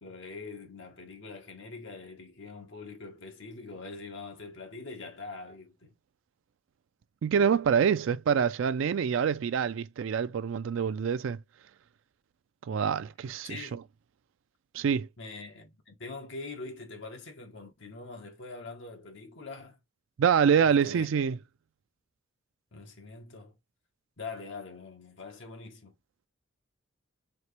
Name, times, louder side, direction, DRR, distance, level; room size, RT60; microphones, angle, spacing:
voice 1, 0.0-6.0 12.7-12.9 13.4-13.7 15.2-19.8 20.6-21.1 22.7-23.6 24.2-25.9, left 3 dB, 65° left, 1.2 m, -43 dB
voice 2, 7.2-11.4 12.7-13.8 14.7-15.1 20.2-21.4, right 7 dB, 70° right, 0.3 m, -26 dB
4.4 x 2.9 x 3.2 m
head